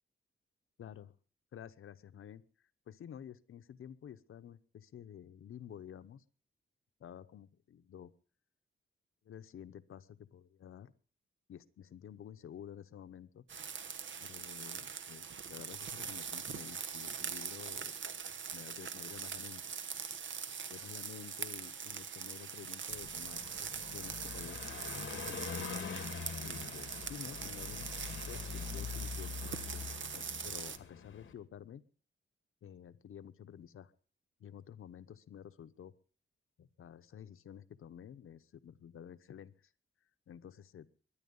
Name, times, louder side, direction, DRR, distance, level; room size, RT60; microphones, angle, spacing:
voice 1, 0.8-1.1 1.5-2.4 2.9-6.2 7.0-8.1 9.2-10.9 11.5-13.4 14.2-18.0 18.5-19.6 20.7-24.6 24.9-25.7 26.4-31.8 32.6-33.9 34.4-35.9 36.6-39.5 40.3-40.9, left 9 dB, 90° left, 10 dB, 0.9 m, -51 dB
sound 1, 13.5-30.8, right 7 dB, 65° right, 1.1 m, -42 dB
Car passing by, 22.9-31.3, left 6 dB, 65° left, 2.1 m, -44 dB
22.0 x 10.0 x 5.4 m, 0.40 s
wide cardioid pair, 175°, 21 cm